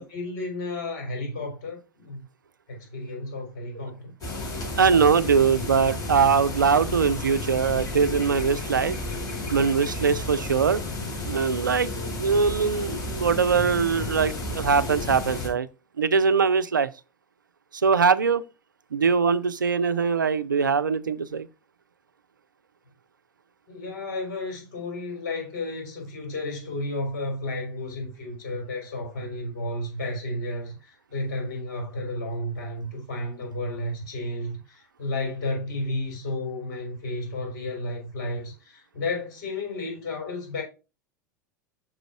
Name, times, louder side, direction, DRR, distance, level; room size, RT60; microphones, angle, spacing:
voice 1, 0.0-2.2 2.7-4.1 23.7-40.6, left 2 dB, 60° left, 4.9 m, -32 dB
sound 1, 4.2-15.5, left 2 dB, 35° left, 4.4 m, -32 dB
voice 2, 4.8-9.0 9.5-10.8 11.3-15.7 16.0-16.9 17.8-18.4 18.9-21.5, right 5 dB, 85° right, 0.5 m, -22 dB
6.1 x 5.1 x 4.6 m
figure-of-eight pair, 85°, 10 cm